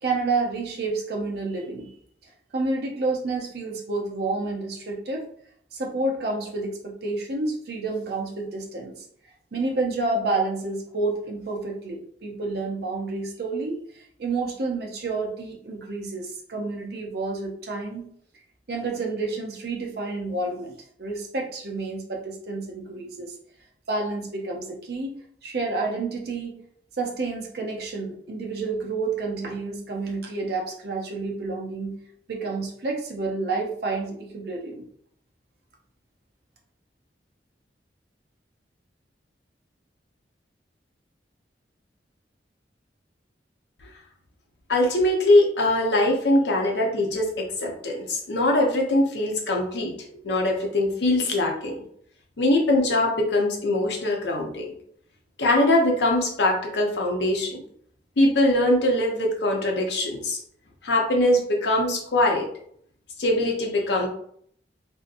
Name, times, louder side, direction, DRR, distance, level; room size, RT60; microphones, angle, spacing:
voice 1, 0.0-1.9 2.5-5.3 5.7-9.0 9.5-18.0 18.7-23.3 23.9-26.6 27.0-32.0 32.3-34.8, right 3 dB, 65° right, 1 dB, 0.6 m, -29 dB
voice 2, 44.7-49.9 50.2-51.8 52.4-54.7 55.4-57.6 58.2-60.4 60.8-62.5 63.2-64.1, left 1 dB, 75° left, 0 dB, 0.7 m, -22 dB
2.7 x 2.5 x 2.4 m, 0.63 s
head